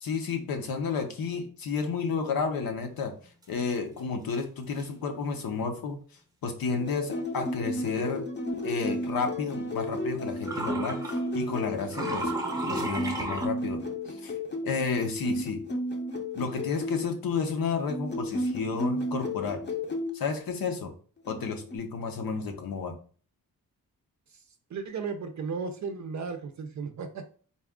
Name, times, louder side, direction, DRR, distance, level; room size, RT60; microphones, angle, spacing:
voice 1, 0.0-3.1 3.5-6.0 6.4-8.3 8.6-12.3 12.7-13.8 14.1-14.3 14.6-15.6 16.3-19.6 20.1-20.9 21.3-22.9, left 5 dB, 75° left, 5 dB, 0.9 m, -31 dB
sound 1, 4.3-4.4 4.8-4.9 9.2-9.3 10.4-11.2 11.8-13.5, right 2 dB, 10° right, 0.7 m, -33 dB
sound 2, 6.7-17.0 17.8-20.1 21.2-21.8, left 1 dB, 30° left, 0.6 m, -33 dB
voice 2, 24.7-27.3, right 5 dB, 55° right, 6 dB, 0.5 m, -35 dB
4.2 x 2.3 x 3.5 m, 0.42 s
wide cardioid pair, 140°, 35 cm